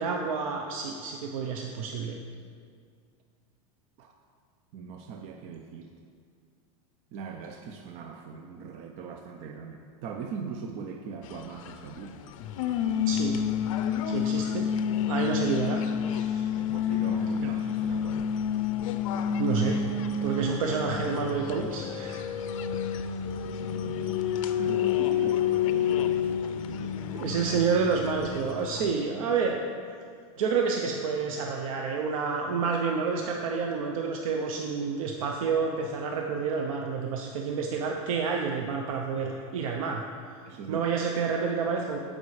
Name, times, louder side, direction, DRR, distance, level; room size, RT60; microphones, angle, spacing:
voice 1, 0.0-2.2 13.1-13.4 14.1-14.7 15.1-15.8 16.1-16.5 19.4-22.3 27.1-29.6 30.4-40.0 40.7-42.0, right 5 dB, 75° right, 2 dB, 0.7 m, -29 dB
voice 2, 4.7-5.9 7.1-12.2 16.4-18.3 22.6-22.8 23.4-24.2 24.6-27.0 40.4-40.8, right 5 dB, 35° right, 4 dB, 0.5 m, -40 dB
sound 1, 11.2-28.9, left 8 dB, 70° left, 0.6 m, -29 dB
15.0 x 5.3 x 3.2 m, 2.2 s
supercardioid pair, 160°, 18 cm